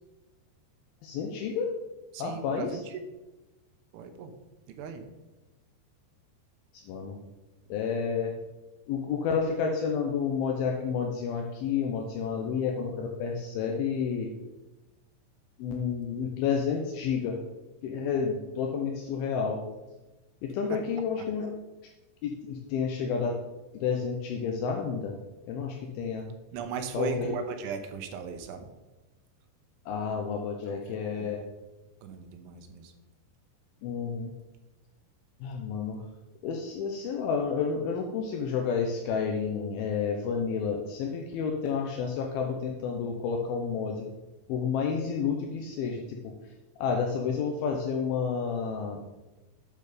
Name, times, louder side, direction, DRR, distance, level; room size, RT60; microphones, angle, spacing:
voice 1, 1.0-1.7 2.2-2.8 6.7-7.2 7.7-8.4 8.9-14.3 15.6-17.4 17.8-19.6 20.4-21.5 22.2-23.4 23.7-25.2 25.4-26.3 26.9-27.3 29.9-31.4 33.8-34.3 35.4-36.0 36.4-44.1 44.5-46.3 46.8-49.0, left 6 dB, 80° left, 2 dB, 2.1 m, -30 dB
voice 2, 2.1-3.0 3.9-4.3 4.7-5.0 20.7-20.8 26.5-28.7 30.7-30.8 31.1-31.3 32.0-32.9, right 6 dB, 85° right, 6 dB, 3.3 m, -37 dB
9.0 x 6.7 x 5.0 m, 1.1 s
omnidirectional pair, 5.4 m